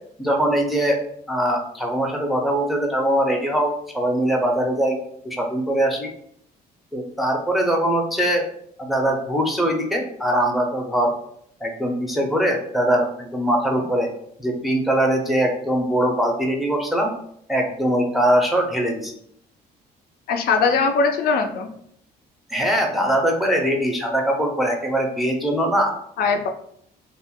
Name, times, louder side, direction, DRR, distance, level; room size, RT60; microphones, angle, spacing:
voice 1, 0.2-1.0 1.3-5.0 5.2-6.1 6.9-8.4 8.8-11.1 11.6-14.1 14.4-17.1 17.5-19.2 22.5-25.9, right 1 dB, ahead, 0 dB, 0.5 m, -22 dB
voice 2, 20.3-21.7 26.2-26.5, left 4 dB, 65° left, 5 dB, 0.4 m, -20 dB
2.3 x 2.0 x 3.5 m, 0.67 s
cardioid pair, 110°, 17 cm